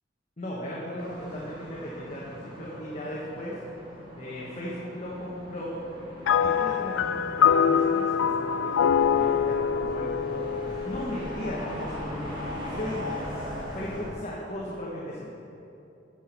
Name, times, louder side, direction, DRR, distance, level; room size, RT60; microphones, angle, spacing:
voice 1, 0.4-3.6 4.2-5.8 6.4-13.2 13.7-15.3, left 1 dB, 40° left, -5 dB, 1.2 m, -37 dB
sound 1, 1.0-14.1, equal, 25° right, 1.9 m, -40 dB
sound 2, 6.3-11.8, left 7 dB, 90° left, 0.3 m, -24 dB
sound 3, 8.9-14.1, equal, 60° left, 1.3 m, -47 dB
9.2 x 6.1 x 5.7 m, 2.8 s
head